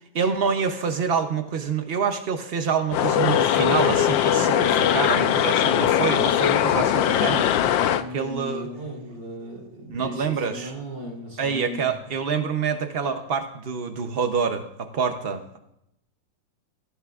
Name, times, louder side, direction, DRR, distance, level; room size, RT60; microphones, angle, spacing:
voice 1, 0.1-7.5 8.1-8.7 9.9-10.7 11.4-15.6, right 6 dB, 80° right, 7 dB, 0.5 m, -26 dB
sound 1, 2.9-8.0, left 10 dB, 85° left, 1.3 m, -20 dB
voice 2, 7.8-11.9, equal, 65° right, -1 dB, 3.8 m, -37 dB
18.0 x 14.0 x 2.4 m, 0.79 s
omnidirectional pair, 2.1 m